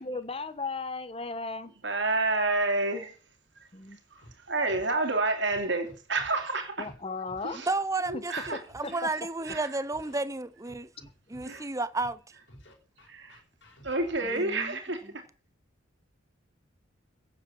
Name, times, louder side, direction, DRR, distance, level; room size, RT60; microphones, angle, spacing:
voice 1, 0.0-1.7 3.7-4.0 6.8-7.6 8.1-8.2 8.8-9.1 14.2-14.3, left 3 dB, 30° left, 1.1 m, -36 dB
voice 2, 1.8-3.2 3.6-3.7 4.1-4.2 4.5-6.9 7.4-7.7 8.1-8.6 8.9-9.2 9.4-9.7 11.4-11.7 13.1-13.4 13.8-15.3, right 2 dB, 60° right, 2.7 m, -29 dB
Scratching (performance technique), 4.2-4.3 4.7-4.9 5.5-6.5 6.8-7.0 7.3-7.6 8.0-9.0 9.4-9.6 9.9-10.2 10.7-11.6 12.0-12.1 12.5-14.3, equal, 60° left, 5.3 m, -52 dB
voice 3, 7.7-8.3 8.7-10.9 11.3-12.2 14.3-14.8, right 2 dB, 15° right, 0.7 m, -32 dB
16.0 x 7.8 x 7.1 m
head